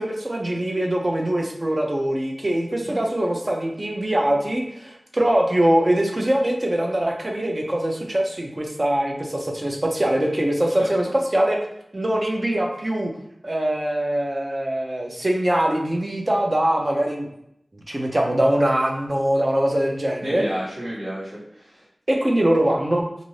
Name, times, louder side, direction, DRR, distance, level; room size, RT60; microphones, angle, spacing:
voice 1, 0.0-11.1 11.3-11.6 11.9-13.1 13.4-17.3 17.7-20.4 22.1-23.0, right 1 dB, 35° right, 1 dB, 0.6 m, -22 dB
voice 2, 10.8-11.1 20.2-21.8, equal, 60° right, -14 dB, 1.4 m, -32 dB
2.6 x 2.5 x 3.2 m, 0.76 s
wide cardioid pair, 65°, 0 cm